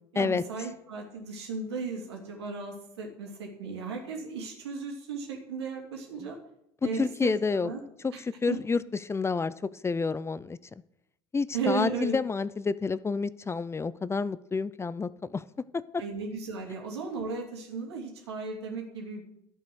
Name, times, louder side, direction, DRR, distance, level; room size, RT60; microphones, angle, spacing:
voice 1, 0.1-6.4 6.8-7.8 8.1-8.2 8.5-8.6 11.5-12.2 16.0-19.2, right 4 dB, 90° right, 1 dB, 3.0 m, -35 dB
voice 2, 7.0-7.7 8.0-8.1 8.4-9.5 9.8-10.6 11.3-15.4, left 4 dB, 20° left, 17 dB, 0.5 m, -29 dB
11.5 x 8.4 x 6.3 m, 0.79 s
hypercardioid pair, 80°, 13 cm